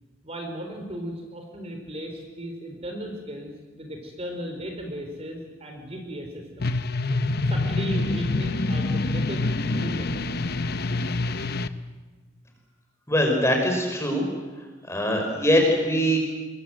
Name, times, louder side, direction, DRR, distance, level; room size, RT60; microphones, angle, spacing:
voice 1, 0.2-6.9 7.5-10.6, right 1 dB, 30° right, 3 dB, 4.2 m, -36 dB
sound 1, 6.6-11.7, left 2 dB, 55° left, 0.9 m, -26 dB
voice 2, 13.1-14.2 14.9-16.2, equal, 15° left, 2 dB, 5.1 m, -22 dB
26.0 x 22.5 x 8.0 m, 1.3 s
head